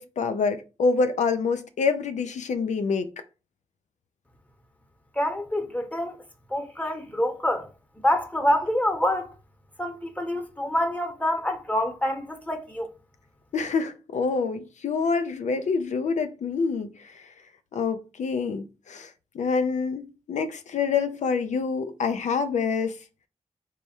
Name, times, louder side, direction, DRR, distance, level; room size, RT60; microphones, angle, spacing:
voice 1, 0.0-3.1 13.5-17.2 17.7-19.1 19.3-23.0, left 5 dB, 75° left, 0.4 m, -26 dB
voice 2, 5.1-6.1 6.5-7.7 8.0-9.3 9.8-12.9, left 1 dB, 10° left, 1.0 m, -26 dB
3.4 x 2.2 x 4.2 m
cardioid pair, 45°, 12 cm